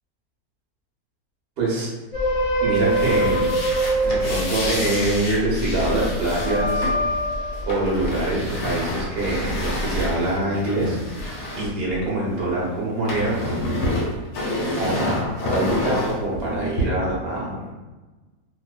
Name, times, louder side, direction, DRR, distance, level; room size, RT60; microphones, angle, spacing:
voice 1, 1.6-1.9 2.6-3.5 4.0-6.9 7.6-11.0 11.5-13.4 14.8-17.7, right 1 dB, 50° right, -5 dB, 0.8 m, -24 dB
sound 1, 2.1-8.8 9.2-10.1, right 1 dB, 40° left, 0.6 m, -25 dB
sound 2, 2.7-12.5 12.8-16.8, left 1 dB, 85° left, 1.3 m, -29 dB
2.8 x 2.0 x 2.3 m, 1.2 s
omnidirectional pair, 1.8 m